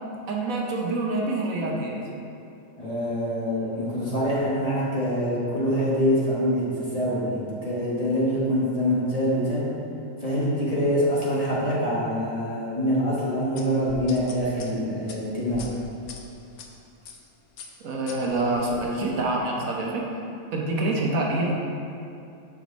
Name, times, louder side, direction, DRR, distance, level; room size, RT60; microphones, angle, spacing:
voice 1, 0.3-2.0 17.8-20.1 20.5-21.5, right 2 dB, 70° right, -2 dB, 1.2 m, -26 dB
voice 2, 2.8-9.7 10.2-15.7, equal, 25° left, -8 dB, 1.2 m, -25 dB
sound 1, 13.6-16.7 17.0-17.3 17.6-18.8, left 5 dB, 75° left, 1.1 m, -42 dB
7.0 x 4.8 x 4.0 m, 2.6 s
omnidirectional pair, 1.5 m